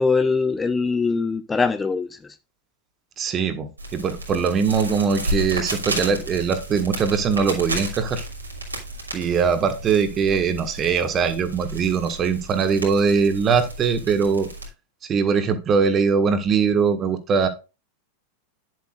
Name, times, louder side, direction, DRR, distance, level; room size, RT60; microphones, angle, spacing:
voice 1, 0.0-2.4, left 4 dB, 15° left, 11 dB, 0.5 m, -22 dB
voice 2, 3.2-8.2 9.1-14.5 15.0-17.5, right 6 dB, 25° right, 9 dB, 1.6 m, -21 dB
sound 1, 3.8-14.7, right 1 dB, 85° right, 2.9 m, -33 dB
10.5 x 7.7 x 2.5 m, 0.29 s
figure-of-eight pair, 90°, 0 cm